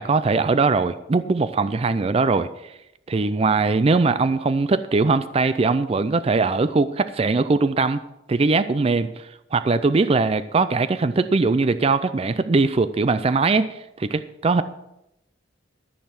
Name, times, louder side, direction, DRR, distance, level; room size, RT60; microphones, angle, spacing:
voice 1, 0.0-2.7 3.1-8.0 8.3-14.6, right 3 dB, 30° right, 13 dB, 0.4 m, -21 dB
13.5 x 6.6 x 5.8 m, 0.86 s
head